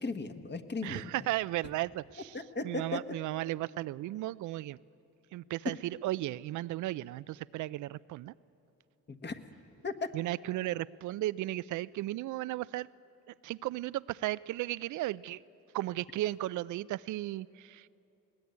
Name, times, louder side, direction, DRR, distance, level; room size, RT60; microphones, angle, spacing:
voice 1, 0.0-1.1 2.3-3.0 9.1-9.4 9.8-10.1, left 3 dB, 35° left, 7 dB, 1.5 m, -36 dB
voice 2, 0.8-2.4 2.6-4.8 5.3-8.3 10.1-12.9 13.4-15.4 15.7-17.9, right 16 dB, 75° right, 17 dB, 0.4 m, -35 dB
20.5 x 19.0 x 9.5 m, 2.8 s
cardioid pair, 90°, 30 cm